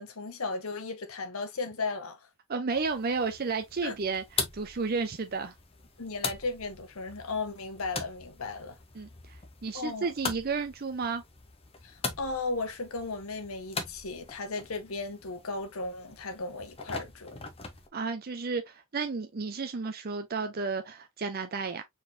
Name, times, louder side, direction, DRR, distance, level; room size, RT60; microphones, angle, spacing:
voice 1, 0.0-2.2 3.8-4.0 6.0-8.8 9.7-10.1 11.8-17.4, left 3 dB, 80° left, 1.0 m, -35 dB
voice 2, 2.5-5.5 8.9-11.2 17.9-21.8, right 4 dB, 45° right, 0.6 m, -32 dB
sound 1, 2.7-17.9, left 4 dB, 25° left, 0.8 m, -41 dB
4.4 x 3.8 x 2.6 m
head